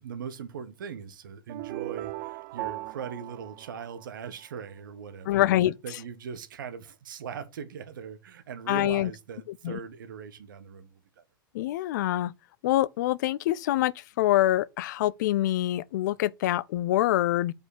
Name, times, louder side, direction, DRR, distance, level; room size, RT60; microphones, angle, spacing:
voice 1, 0.0-5.5 5.8-11.2, right 7 dB, 65° right, 1.2 m, -40 dB
sound 1, 1.5-4.5, right 19 dB, 45° right, 0.4 m, -38 dB
voice 2, 5.3-5.8 8.7-9.1 9.6-9.8 11.5-12.3 12.6-17.5, left 14 dB, 55° left, 0.4 m, -25 dB
5.3 x 4.8 x 6.3 m
figure-of-eight pair, 85°, 12 cm